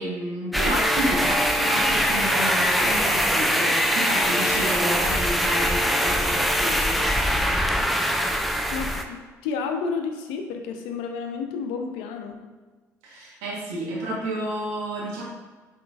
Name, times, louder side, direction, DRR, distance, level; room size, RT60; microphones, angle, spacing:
voice 1, 0.0-7.0 13.0-15.2, right 1 dB, 75° right, -3 dB, 1.1 m, -30 dB
sound 1, 0.5-9.0, equal, ahead, 0.4 m, -22 dB
voice 2, 8.7-12.4, left 5 dB, 70° left, 5 dB, 0.5 m, -31 dB
5.8 x 2.9 x 2.3 m, 1.3 s
hypercardioid pair, 55°, 8 cm